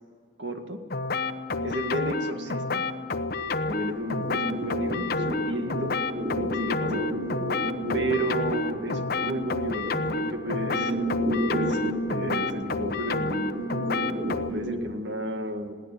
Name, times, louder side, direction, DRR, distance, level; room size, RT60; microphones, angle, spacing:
voice 1, 0.4-0.8 1.6-2.8 3.6-5.9 6.3-7.1 7.9-11.0 11.5-13.6 14.5-15.8, right 1 dB, 90° right, 6 dB, 2.1 m, -33 dB
sound 1, 0.9-14.5, left 3 dB, 60° left, 1.0 m, -30 dB
sound 2, 3.4-14.9, right 1 dB, 50° right, 2.6 m, -32 dB
21.5 x 17.0 x 8.7 m, 2.1 s
head